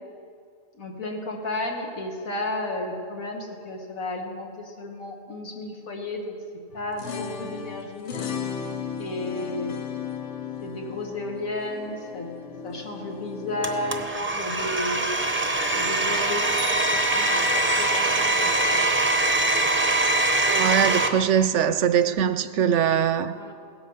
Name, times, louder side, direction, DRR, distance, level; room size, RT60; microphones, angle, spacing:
voice 1, 0.7-6.4 6.7-8.2 9.0-9.7 10.6-12.3 12.6-15.1 15.7-18.9 22.1-22.2 23.3-23.5, left 2 dB, 85° left, 2.3 m, -33 dB
sound 1, 6.7-14.1, left 7 dB, 60° left, 1.1 m, -35 dB
Domestic sounds home sounds, 13.6-21.1, right 2 dB, 10° right, 0.7 m, -23 dB
sound 2, 16.6-18.0, right 1 dB, 40° left, 3.7 m, -38 dB
voice 2, 20.5-23.3, right 8 dB, 70° right, 0.9 m, -22 dB
17.0 x 13.5 x 5.6 m
omnidirectional pair, 1.4 m